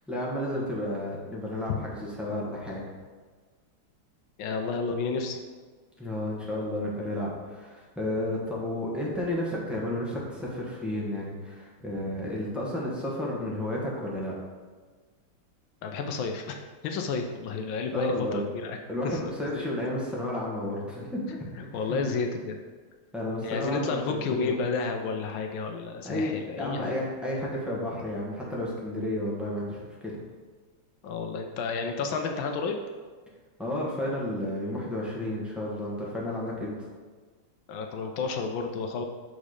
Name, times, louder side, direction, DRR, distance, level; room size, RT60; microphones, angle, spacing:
voice 1, 0.1-2.9 6.0-14.3 17.9-18.5 18.9-21.5 21.9-22.0 23.1-24.5 26.0-30.2 33.6-36.7, left 1 dB, ahead, -6 dB, 0.6 m, -32 dB
voice 2, 4.4-5.4 15.8-16.6 16.8-18.8 19.0-19.7 21.6-22.6 23.4-27.0 31.0-32.8 37.7-39.0, left 4 dB, 75° left, 4 dB, 1.3 m, -31 dB
6.3 x 4.1 x 4.9 m, 1.4 s
omnidirectional pair, 2.3 m